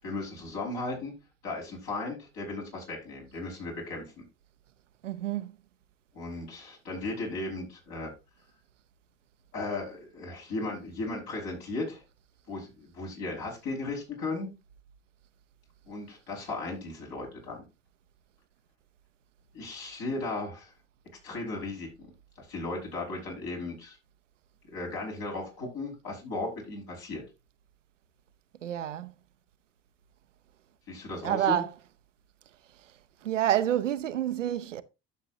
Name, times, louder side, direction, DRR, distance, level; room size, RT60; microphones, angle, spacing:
voice 1, 0.0-1.1 1.4-4.2 6.1-8.1 9.5-12.0 12.5-14.5 15.9-17.6 19.5-20.7 21.2-22.1 22.4-24.0 24.7-27.2 30.9-31.6, left 2 dB, 65° left, 5.3 m, -36 dB
voice 2, 5.0-5.5 28.6-29.1 31.2-31.7 33.2-34.8, right 11 dB, 85° right, 0.6 m, -28 dB
12.5 x 6.7 x 2.7 m
figure-of-eight pair, 55°, 36 cm